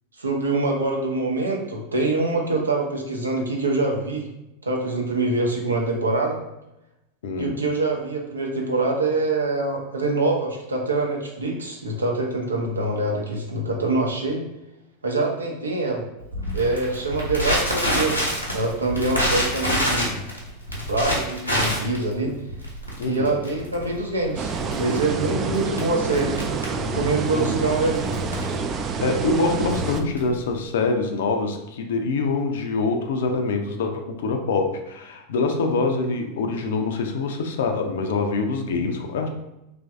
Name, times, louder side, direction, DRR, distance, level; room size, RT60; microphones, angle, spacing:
voice 1, 0.2-4.3 4.6-6.4 7.4-14.4 15.0-16.0 16.5-20.2 20.7-22.4 23.0-26.5 26.7-28.2, right 2 dB, 80° right, 0 dB, 0.6 m, -25 dB
voice 2, 7.2-7.5 23.0-23.4 25.4-25.7 27.3-27.6 29.0-39.3, left 3 dB, 65° left, 5 dB, 0.5 m, -25 dB
Crackle, 16.3-30.5, equal, 90° left, 0.9 m, -28 dB
sound 1, 24.4-30.0, right 4 dB, 30° right, 0.3 m, -27 dB
3.1 x 2.6 x 3.4 m, 0.91 s
figure-of-eight pair, 85°, 0 cm